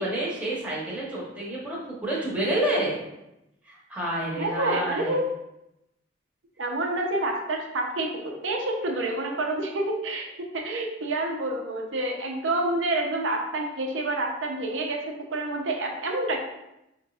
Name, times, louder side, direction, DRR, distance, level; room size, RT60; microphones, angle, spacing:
voice 1, 0.0-3.0 3.7-5.2, right 1 dB, 10° right, -7 dB, 1.0 m, -29 dB
voice 2, 4.4-5.2 6.6-16.4, right 2 dB, 80° right, 1 dB, 0.7 m, -28 dB
5.4 x 3.1 x 2.4 m, 0.88 s
head